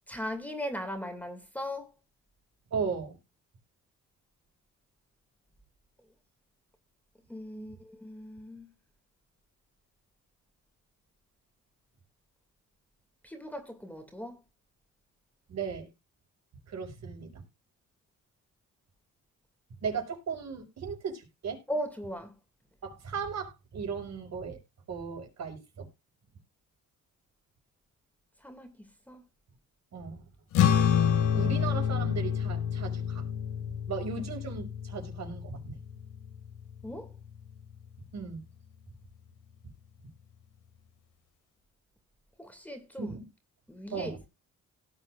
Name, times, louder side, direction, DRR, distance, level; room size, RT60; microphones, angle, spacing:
voice 1, 0.1-1.9 7.3-8.7 13.2-14.4 21.7-22.3 28.4-29.2 36.8-37.1 42.4-43.2 43.7-44.3, equal, 5° left, 2.6 m, -38 dB
voice 2, 2.7-3.2 7.5-7.7 15.5-15.9 16.7-17.4 19.8-21.6 22.8-24.6 24.9-25.9 29.9-30.2 31.3-33.2 33.9-35.8 38.1-38.4 43.0-43.3 43.9-44.2, right 5 dB, 60° right, 5.5 m, -36 dB
sound 1, 30.5-37.2, left 8 dB, 85° left, 2.6 m, -28 dB
18.0 x 7.8 x 2.6 m
cardioid pair, 90°, 30 cm